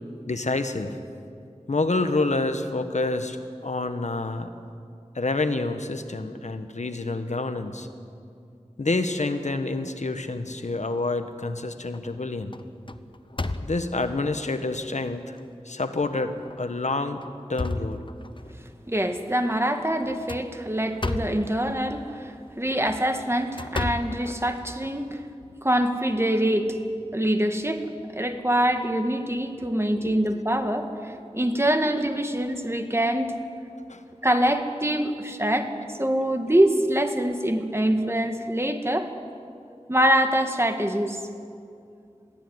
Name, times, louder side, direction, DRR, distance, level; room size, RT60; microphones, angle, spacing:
voice 1, 0.3-1.0 1.7-4.5 5.1-7.9 8.8-12.6 13.6-15.4 15.6-17.2 17.5-18.1 29.9-30.2 33.9-34.0, left 2 dB, 80° left, 8 dB, 1.3 m, -28 dB
sound 1, 10.9-11.5 11.9-12.2 12.5-14.1 14.8-14.9 15.4-15.5 16.4-16.6 17.1-18.5 20.0-21.5 22.6-24.9, left 2 dB, 45° left, 1.0 m, -33 dB
voice 2, 18.9-25.2 25.6-26.8 27.1-33.4 34.2-35.7 36.0-39.1 39.9-41.2, right 1 dB, 20° right, 6 dB, 1.9 m, -24 dB
22.5 x 15.5 x 9.5 m, 2.4 s
wide cardioid pair, 45°, 12 cm